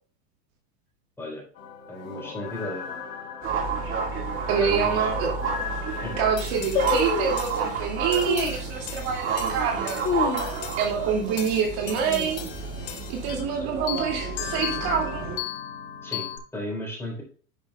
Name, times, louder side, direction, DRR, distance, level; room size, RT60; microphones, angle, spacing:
sound 1, 1.5-13.5 13.9-16.4, left 9 dB, 85° left, 2.7 m, -37 dB
voice 1, 1.9-2.8 4.6-5.1 6.0-6.1 13.7-13.8 16.0-16.3 16.5-17.2, left 1 dB, 5° left, -2 dB, 3.8 m, -34 dB
sound 2, 3.4-15.4, right 5 dB, 25° right, 1.9 m, -30 dB
voice 2, 4.5-5.3 6.2-10.0 10.8-12.4 13.1-15.3, right 7 dB, 45° right, 1 dB, 2.3 m, -26 dB
sound 3, 4.7-4.8 5.4-5.5 5.7-6.1 6.7-7.5 8.2-8.6 9.2-9.3 9.8-10.9 11.2-11.3 11.6-12.0 12.4-12.8 13.4-14.2 14.4-14.5, left 5 dB, 20° left, 2.1 m, -28 dB
11.0 x 6.1 x 2.3 m, 0.42 s
supercardioid pair, 150°, 48 cm